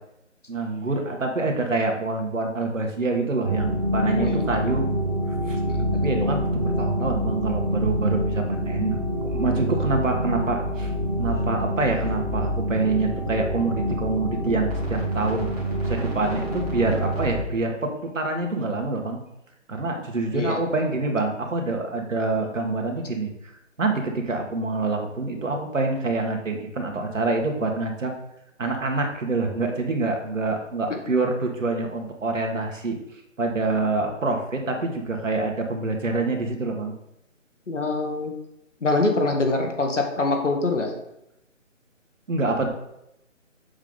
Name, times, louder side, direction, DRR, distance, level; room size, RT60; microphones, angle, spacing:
voice 1, 0.5-4.8 5.5-5.6 6.0-10.9 11.2-15.5 15.8-19.2 19.7-23.5 23.8-28.1 28.6-33.0 33.4-36.9 42.3-42.7, right 3 dB, 75° right, 3 dB, 1.7 m, -26 dB
sound 1, 3.4-17.4, equal, 30° right, 1.8 m, -26 dB
voice 2, 4.1-4.6 5.7-6.0 20.3-20.6 30.9-31.0 37.7-38.3 38.8-40.9, left 2 dB, 65° left, 4 dB, 1.5 m, -24 dB
7.2 x 3.8 x 5.4 m, 0.83 s
hypercardioid pair, 180°, 39 cm